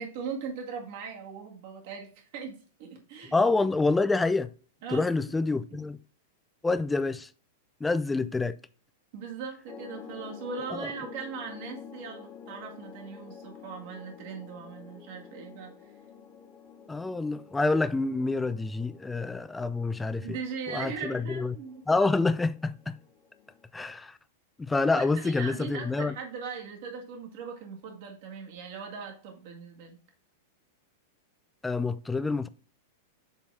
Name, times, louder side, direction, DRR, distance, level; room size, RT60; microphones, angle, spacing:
voice 1, 0.0-3.3 4.8-5.3 9.1-15.7 20.2-21.8 24.9-30.0, right 5 dB, 50° right, 1.9 m, -39 dB
voice 2, 3.3-4.5 4.9-6.0 6.6-7.3 7.8-8.6 10.7-10.9 16.9-20.2 20.7-21.6 21.9-23.0 23.7-24.1 24.6-26.1 31.6-32.5, left 3 dB, 10° left, 0.4 m, -27 dB
sound 1, 9.7-23.6, left 6 dB, 25° left, 1.0 m, -49 dB
7.5 x 4.1 x 3.4 m
figure-of-eight pair, 95°, 0 cm